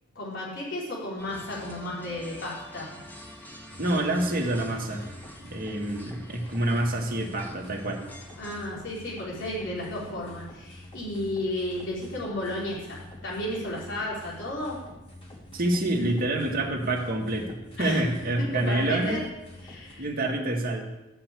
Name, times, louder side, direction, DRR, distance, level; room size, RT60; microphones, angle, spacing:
voice 1, 0.1-3.0 8.4-14.8 17.8-18.0 18.5-19.2 19.6-20.1, left 1 dB, 65° left, -5 dB, 4.2 m, -33 dB
sound 1, 1.2-8.7, equal, 10° left, 1.6 m, -47 dB
sound 2, 3.7-19.9, left 1 dB, 30° left, 2.9 m, -47 dB
voice 2, 3.8-5.1 5.4-8.0 15.5-19.2 20.0-20.8, right 1 dB, 50° right, 1 dB, 2.1 m, -27 dB
14.0 x 5.7 x 8.5 m, 1.0 s
head